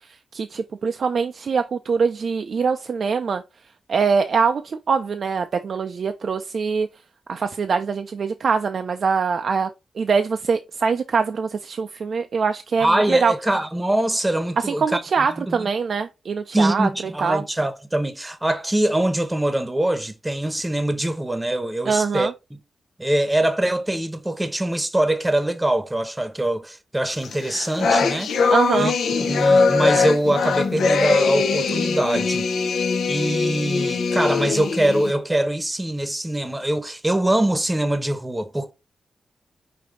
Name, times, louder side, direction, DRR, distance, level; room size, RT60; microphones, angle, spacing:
voice 1, 0.3-3.4 3.9-6.9 7.3-9.7 10.0-13.3 14.6-16.9 17.2-17.4 21.8-22.3 28.5-28.9, right 5 dB, 65° right, 0.4 m, -23 dB
voice 2, 12.8-15.0 15.4-15.7 16.5-22.6 23.0-28.3 28.7-28.9 29.3-32.5 33.1-38.7, right 1 dB, 15° right, 0.8 m, -23 dB
sound 1, 27.2-35.1, left 4 dB, 90° left, 0.7 m, -21 dB
5.2 x 2.7 x 3.8 m
cardioid pair, 75°, 0 cm